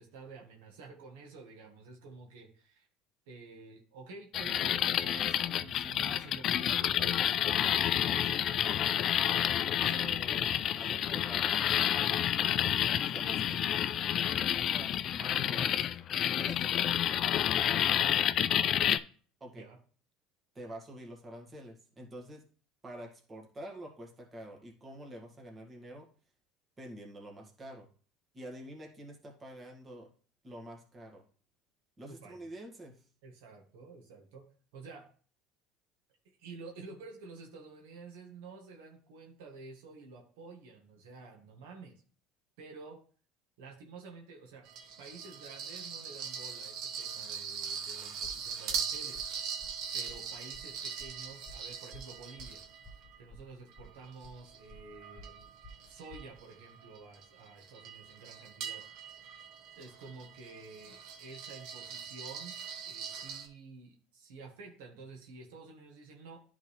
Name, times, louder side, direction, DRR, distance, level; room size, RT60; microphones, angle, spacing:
voice 1, 0.0-2.9 3.3-9.1 9.7-10.4 19.5-19.8 32.1-32.5 33.2-34.5 34.7-35.1 36.4-42.0 42.6-43.0 43.6-44.7 45.0-49.5 49.9-52.6 53.2-55.5 55.9-59.3 59.7-62.6 62.8-66.4, right 4 dB, 80° right, 1 dB, 1.5 m, -50 dB
sound 1, 4.3-19.0, left 10 dB, 50° left, 0.4 m, -29 dB
voice 2, 9.8-12.3 13.0-13.8 14.3-16.1 16.3-16.9 17.9-18.3 19.4-19.7 20.6-22.5 22.8-26.1 26.8-27.9 28.3-30.1 30.4-31.2 32.0-33.0, right 1 dB, 25° right, 0 dB, 1.9 m, -47 dB
sound 2, 44.7-53.2 53.7-63.5, right 7 dB, 65° right, 1.1 m, -41 dB
sound 3, 48.2-56.4, equal, 5° right, 1.6 m, -53 dB
10.0 x 3.9 x 3.3 m, 0.43 s
supercardioid pair, 95°, 0 cm